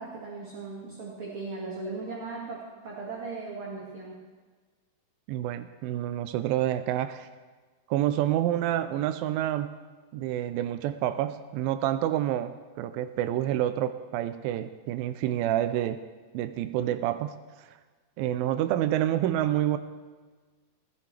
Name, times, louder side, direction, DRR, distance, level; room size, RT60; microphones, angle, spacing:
voice 1, 0.0-4.2, right 3 dB, 40° right, -5 dB, 2.2 m, -38 dB
voice 2, 5.3-7.3 7.9-9.8 10.1-16.0 16.3-17.7 18.2-19.8, right 12 dB, 90° right, 11 dB, 2.0 m, -28 dB
19.5 x 15.0 x 3.4 m, 1.4 s
omnidirectional pair, 4.7 m